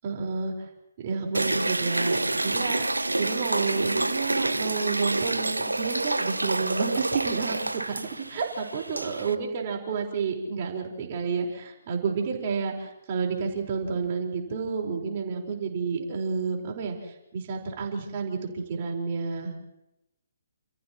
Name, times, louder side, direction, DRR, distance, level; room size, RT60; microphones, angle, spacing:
voice 1, 0.0-0.7 1.0-2.8 3.2-12.7 13.1-19.5, right 5 dB, 40° right, 1 dB, 4.9 m, -30 dB
sound 1, 1.3-9.3, right 2 dB, 85° right, 1.0 m, -28 dB
29.5 x 28.5 x 3.1 m, 0.90 s
figure-of-eight pair, 135°, 0 cm